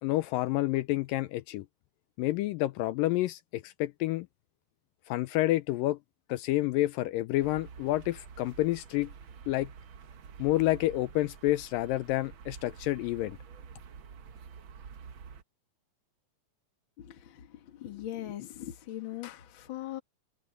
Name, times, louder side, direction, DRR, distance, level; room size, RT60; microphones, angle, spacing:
voice 1, 0.0-1.7 2.2-4.3 5.1-6.0 6.3-9.1 9.5-9.7 10.4-13.4, left 16 dB, 80° left, 2.2 m, -29 dB
sound 1, 7.4-15.4, right 6 dB, 90° right, 1.0 m, -48 dB
voice 2, 17.0-20.0, left 13 dB, 45° left, 1.8 m, -40 dB
omnidirectional pair, 4.1 m